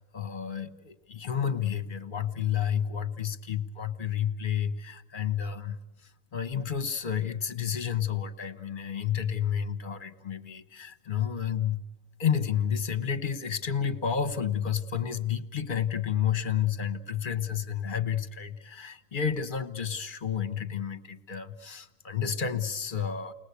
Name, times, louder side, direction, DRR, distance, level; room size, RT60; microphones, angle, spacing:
voice 1, 0.0-11.8 12.2-23.3, left 8 dB, 40° left, 12 dB, 1.1 m, -30 dB
29.5 x 20.5 x 8.3 m, 1.0 s
omnidirectional pair, 1.4 m